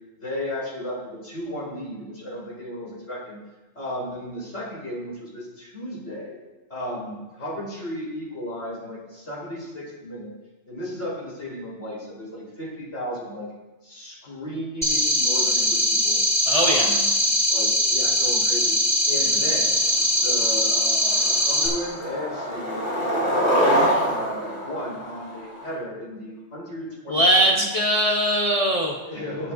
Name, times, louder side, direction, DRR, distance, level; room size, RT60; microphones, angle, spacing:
voice 1, 0.2-3.4 3.7-6.4 6.7-10.3 10.7-13.5 13.8-16.2 16.6-17.1 17.5-18.8 19.0-19.7 20.2-22.8 24.0-27.7 29.0-29.5, equal, 90° left, -5 dB, 4.4 m, -34 dB
sound 1, 14.8-21.7, equal, 15° left, 3.8 m, -21 dB
voice 2, 16.5-17.0 27.1-28.9, right 1 dB, 35° left, -1 dB, 1.0 m, -20 dB
Skateboard, 20.0-20.1 20.5-20.8 21.1-25.7, equal, 70° left, 2.8 m, -25 dB
19.0 x 8.1 x 2.7 m, 1.1 s
omnidirectional pair, 1.2 m